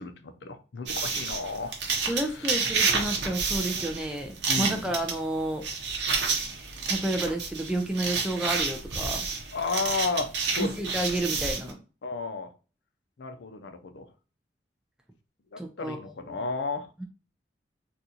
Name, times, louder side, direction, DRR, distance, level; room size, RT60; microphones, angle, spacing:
voice 1, 0.0-2.6 4.5-4.8 9.5-10.7 12.0-12.5 13.2-14.1 15.5-17.0, left 4 dB, 80° left, 8 dB, 0.5 m, -33 dB
sound 1, 0.9-11.7, right 5 dB, 75° right, 0.8 m, -30 dB
voice 2, 2.1-5.7 6.9-9.3 10.6-11.8 15.6-16.0 16.2-16.4 17.0-17.1, right 1 dB, 5° right, 1 dB, 0.3 m, -30 dB
3.7 x 2.4 x 2.8 m, 0.35 s
head